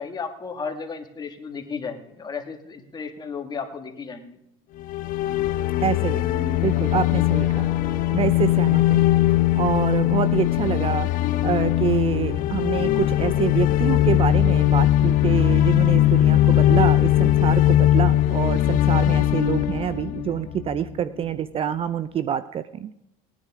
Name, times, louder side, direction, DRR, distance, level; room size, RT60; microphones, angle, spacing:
voice 1, 0.0-4.4, left 5 dB, 25° left, 6 dB, 1.8 m, -34 dB
sound 1, 4.8-20.9, left 13 dB, 50° left, 0.7 m, -20 dB
voice 2, 5.8-6.2 6.6-7.7 8.1-9.0 9.6-22.9, right 8 dB, 30° right, 16 dB, 0.5 m, -26 dB
sound 2, 6.0-10.4, right 1 dB, 10° right, 1.7 m, -41 dB
19.0 x 9.9 x 3.6 m, 0.83 s
supercardioid pair, 110°, 18 cm